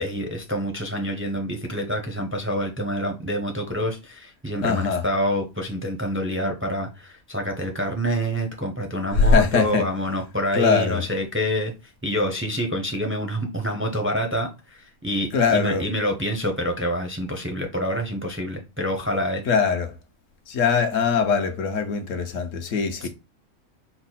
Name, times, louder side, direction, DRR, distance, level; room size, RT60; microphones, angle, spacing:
voice 1, 0.0-11.7 12.0-19.4 23.0-23.1, equal, 15° right, 0.5 m, -27 dB
voice 2, 4.6-5.0 9.1-9.9 10.5-11.0 15.3-15.8 19.5-19.9 20.5-23.1, left 5 dB, 70° left, 1.1 m, -21 dB
4.7 x 2.1 x 4.0 m
omnidirectional pair, 1.4 m